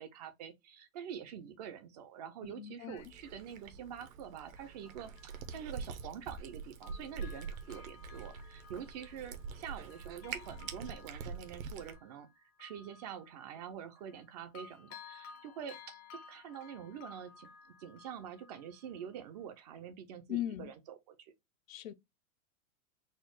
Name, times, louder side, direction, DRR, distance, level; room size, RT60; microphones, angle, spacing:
voice 1, 0.0-12.3 12.6-17.5 17.8-21.3, right 8 dB, 30° right, 0.4 m, -46 dB
voice 2, 2.4-3.0 20.3-20.7 21.7-21.9, left 13 dB, 70° left, 0.7 m, -39 dB
Cat, 3.0-12.0, right 5 dB, 70° right, 1.0 m, -45 dB
Bell, 3.6-3.7 4.6-6.5 6.8-14.2 14.5-19.2 19.6-19.7, left 5 dB, 20° left, 0.5 m, -56 dB
4.3 x 2.1 x 4.6 m
hypercardioid pair, 145°, 41 cm